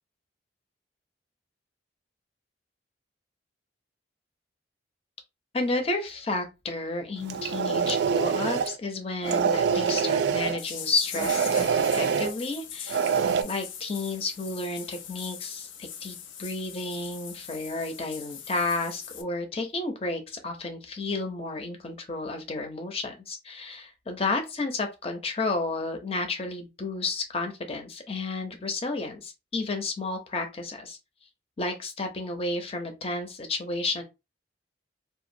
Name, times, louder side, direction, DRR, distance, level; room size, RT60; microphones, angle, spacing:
voice 1, 5.5-13.0 13.4-31.0 31.6-34.0, left 3 dB, 30° left, 0.6 m, -31 dB
sound 1, 7.2-8.7 9.2-10.6 11.1-12.3 12.9-13.4, right 6 dB, 65° right, 0.3 m, -25 dB
sound 2, 10.6-19.2, left 8 dB, 85° left, 0.5 m, -41 dB
2.8 x 2.4 x 2.5 m
head